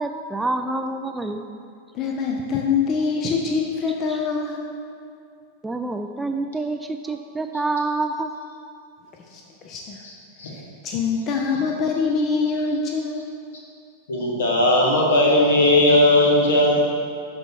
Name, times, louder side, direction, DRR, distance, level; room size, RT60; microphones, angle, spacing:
voice 1, 0.0-1.4 4.1-4.2 5.6-8.3, right 2 dB, 10° right, 6 dB, 0.4 m, -27 dB
voice 2, 1.9-4.7 9.3-10.0 10.5-13.2, left 5 dB, 35° left, 1 dB, 0.7 m, -24 dB
voice 3, 14.1-16.8, left 1 dB, 65° left, -2 dB, 1.7 m, -17 dB
11.5 x 4.2 x 4.6 m, 2.4 s
figure-of-eight pair, 90°, 0 cm